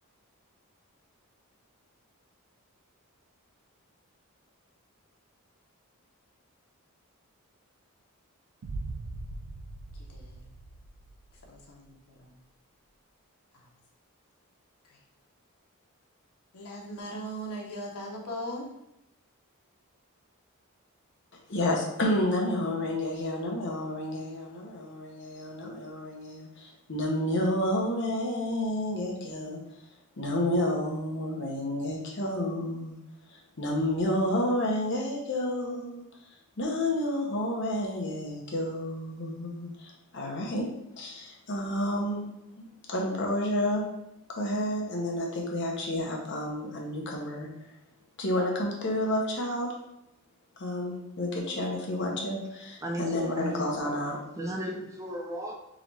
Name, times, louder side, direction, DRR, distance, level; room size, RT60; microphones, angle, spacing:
sound 1, 8.6-11.6, right 2 dB, 90° right, 0.4 m, -40 dB
voice 1, 10.1-10.4 11.5-12.3 16.5-18.7, equal, 85° left, -1 dB, 0.9 m, -39 dB
voice 2, 21.5-29.6 30.2-33.0 33.3-36.0 36.6-40.7 41.0-42.3 42.6-43.9 44.3-47.5 48.2-49.7 50.6-54.2, left 1 dB, 55° left, -1 dB, 0.8 m, -30 dB
voice 3, 52.8-53.9 54.4-55.5, equal, 15° right, 1 dB, 0.3 m, -35 dB
3.8 x 3.0 x 3.2 m, 0.83 s
head